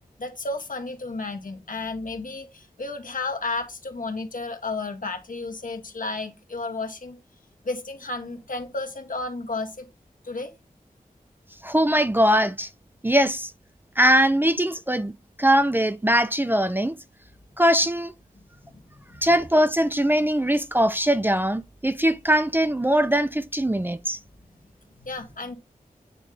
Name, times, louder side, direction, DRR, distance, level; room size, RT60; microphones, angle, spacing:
voice 1, 0.2-7.2 7.6-9.9 10.2-10.5 18.3-19.2 25.0-25.5, left 3 dB, 65° left, 1.3 m, -33 dB
voice 2, 11.6-12.7 13.0-13.5 14.0-15.1 15.4-16.9 17.6-18.1 19.2-24.2, equal, 15° right, 0.5 m, -21 dB
9.0 x 3.1 x 3.7 m
wide cardioid pair, 50°, 15 cm